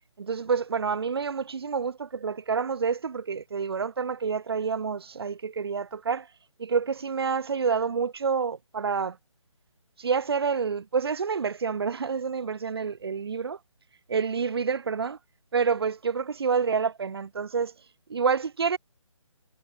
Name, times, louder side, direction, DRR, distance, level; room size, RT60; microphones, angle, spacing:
voice 1, 0.2-6.3 6.6-9.2 10.0-13.6 14.1-15.2 15.5-17.7 18.1-18.8, right 5 dB, 45° right, 3.5 m, -28 dB
figure-of-eight pair, 150°, 17 cm